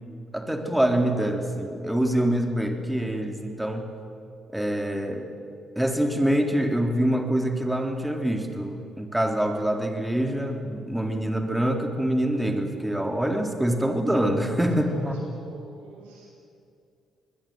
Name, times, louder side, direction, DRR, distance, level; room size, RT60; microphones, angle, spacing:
voice 1, 0.3-3.9 4.5-5.3 5.8-15.1, right 1 dB, 10° right, 4 dB, 3.6 m, -25 dB
voice 2, 14.2-16.3, right 1 dB, 80° right, -2 dB, 7.5 m, -43 dB
27.0 x 20.5 x 8.0 m, 2.4 s
hypercardioid pair, 45°, 0 cm